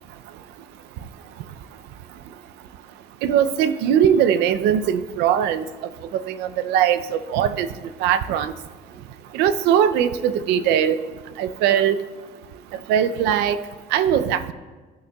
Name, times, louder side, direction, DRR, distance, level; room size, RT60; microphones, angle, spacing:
voice 1, 3.2-5.6 6.1-7.7 8.0-8.5 9.3-11.0 11.4-12.0 12.9-13.6 13.9-14.5, right 9 dB, 80° right, 13 dB, 0.5 m, -20 dB
15.0 x 6.4 x 2.3 m, 1.3 s
cardioid pair, 140°, 17 cm